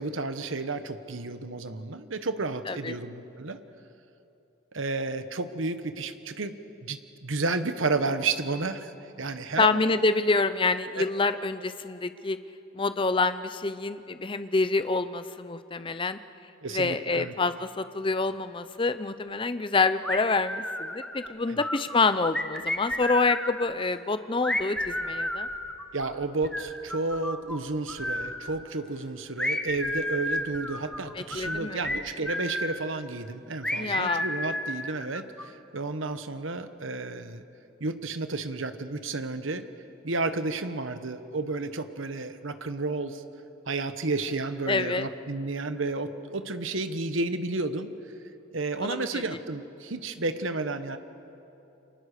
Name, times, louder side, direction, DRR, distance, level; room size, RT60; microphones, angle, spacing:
voice 1, 0.0-3.6 4.7-8.9 9.2-9.8 11.0-11.1 16.6-17.3 21.5-21.6 25.9-37.4 37.8-39.7 40.0-43.2 43.7-47.9 48.5-51.0, right 3 dB, 75° right, 10 dB, 1.1 m, -32 dB
voice 2, 9.6-12.4 12.7-16.2 16.7-25.5 31.2-31.8 33.8-34.2 44.7-45.1 48.8-49.2, left 3 dB, 25° left, 12 dB, 0.6 m, -27 dB
sound 1, 20.0-21.3 21.6-23.7 24.4-27.6 27.9-28.6 29.4-32.8 33.6-35.4, left 1 dB, 5° left, 1.2 m, -32 dB
29.0 x 24.0 x 6.7 m, 2.9 s
head